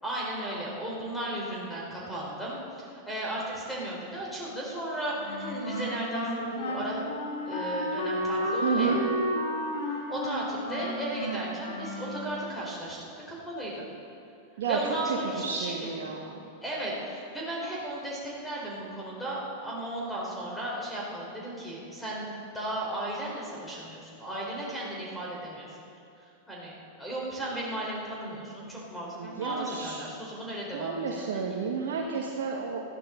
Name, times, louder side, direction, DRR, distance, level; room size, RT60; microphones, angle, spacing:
voice 1, 0.0-7.2 7.5-9.0 10.1-13.0 13.3-13.9 14.7-16.1 16.6-22.3 22.5-25.9 26.2-26.7 27.0-31.6, right 1 dB, 5° left, -5 dB, 4.1 m, -35 dB
Wind instrument woodwind instrument, 5.1-12.5, left 1 dB, 60° left, 3.1 m, -32 dB
voice 2, 8.6-9.0 14.6-14.8 15.4-16.3 29.2-30.0 30.7-32.8, right 6 dB, 60° right, -1 dB, 1.5 m, -31 dB
20.0 x 13.5 x 3.9 m, 2.6 s
figure-of-eight pair, 95°, 0 cm